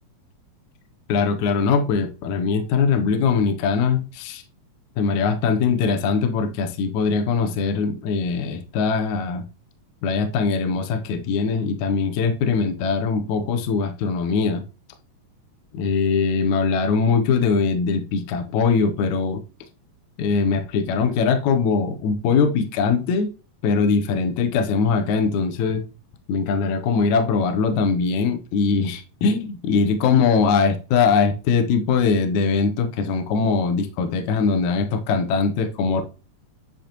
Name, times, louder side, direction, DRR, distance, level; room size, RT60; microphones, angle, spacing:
voice 1, 1.1-4.4 5.0-9.5 10.0-14.6 15.7-19.4 20.2-23.3 23.6-25.8 26.3-36.0, left 5 dB, 75° left, 1.9 m, -21 dB
10.0 x 3.8 x 2.9 m
omnidirectional pair, 4.0 m